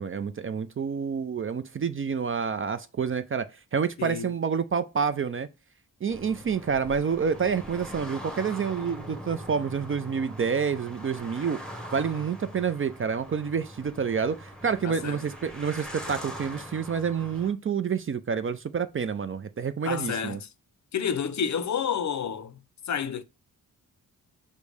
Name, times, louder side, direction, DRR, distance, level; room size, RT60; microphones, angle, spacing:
voice 1, 0.0-5.5 6.0-11.6 11.9-20.4, right 6 dB, 35° right, 0.4 m, -28 dB
voice 2, 4.0-4.3 14.8-15.2 19.8-20.5 20.9-22.6 22.9-23.2, left 7 dB, 50° left, 0.5 m, -30 dB
sound 1, 6.1-17.5, equal, ahead, 0.9 m, -42 dB
5.1 x 2.2 x 4.8 m
cardioid pair, 70°, 37 cm